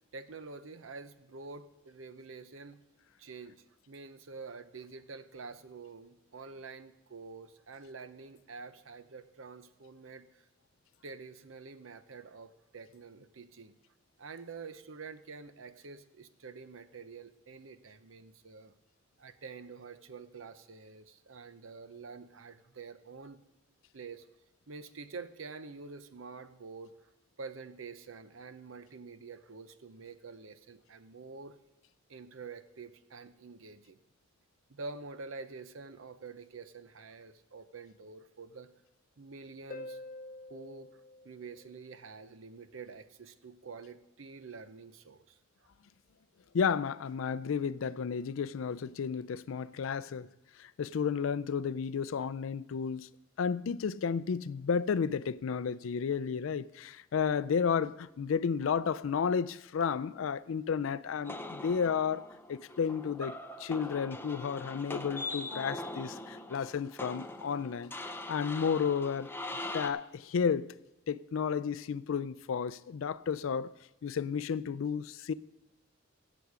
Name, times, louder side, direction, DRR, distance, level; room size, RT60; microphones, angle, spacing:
voice 1, 0.1-2.8 3.2-10.4 11.0-13.7 14.2-18.7 19.2-23.4 23.9-24.3 24.7-26.9 27.4-31.6 32.1-34.0 34.7-38.7 39.2-40.0 40.5-41.0 41.2-45.4, right 4 dB, 75° right, 0.7 m, -47 dB
Harp, 39.7-42.2 45.7-45.8, left 2 dB, 40° left, 1.2 m, -47 dB
voice 2, 46.5-50.3 50.6-53.1 53.4-63.3 63.6-69.3 69.7-70.7 71.1-73.7 74.0-75.3, left 6 dB, 70° left, 0.4 m, -32 dB
sound 1, 61.2-69.9, left 2 dB, 10° left, 0.6 m, -42 dB
16.0 x 7.0 x 4.9 m
head